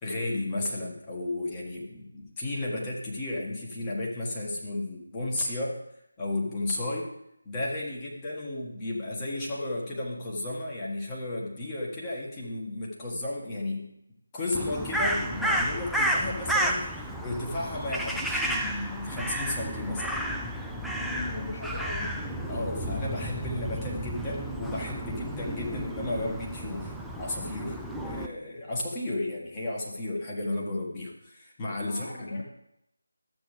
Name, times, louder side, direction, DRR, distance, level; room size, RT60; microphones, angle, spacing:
voice 1, 0.0-5.8 6.2-7.1 7.5-13.9 14.3-20.2 22.5-32.4, left 2 dB, 15° left, -4 dB, 1.8 m, -33 dB
Crow, 14.5-28.3, right 1 dB, ahead, 0.4 m, -32 dB
voice 2, 21.0-22.2 31.9-32.4, left 3 dB, 35° left, -2 dB, 2.5 m, -39 dB
12.5 x 8.3 x 3.4 m, 0.81 s
figure-of-eight pair, 160°, 0 cm